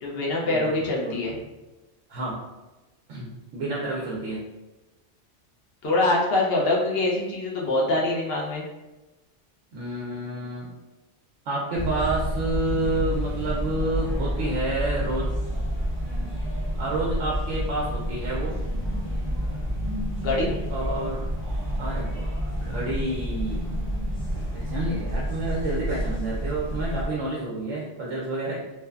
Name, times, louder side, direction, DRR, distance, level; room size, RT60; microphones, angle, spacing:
voice 1, 0.0-1.4 5.8-8.6 20.2-20.5, left 2 dB, 60° left, -3 dB, 0.8 m, -24 dB
voice 2, 0.5-1.4 2.1-2.4 3.1-4.4 9.7-10.7 11.5-15.3 16.8-18.6 20.7-21.2 21.8-23.7 24.5-28.6, right 2 dB, 80° right, -5 dB, 0.9 m, -29 dB
sound 1, 11.7-27.1, equal, 10° left, 0.7 m, -29 dB
3.1 x 2.1 x 2.3 m, 1.1 s
omnidirectional pair, 1.2 m